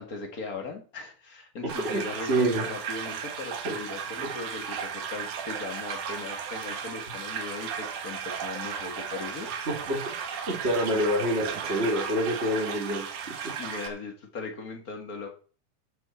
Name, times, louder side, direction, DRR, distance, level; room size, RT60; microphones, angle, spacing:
voice 1, 0.0-9.5 13.6-15.3, left 4 dB, 35° left, 3 dB, 2.0 m, -38 dB
voice 2, 1.6-2.7 3.6-3.8 4.2-4.3 9.7-10.1 10.5-13.1 13.4-13.5, equal, 20° right, -1 dB, 2.2 m, -27 dB
sound 1, 1.7-13.9, right 7 dB, 80° right, 2.8 m, -35 dB
13.0 x 7.8 x 4.5 m, 0.40 s
omnidirectional pair, 3.6 m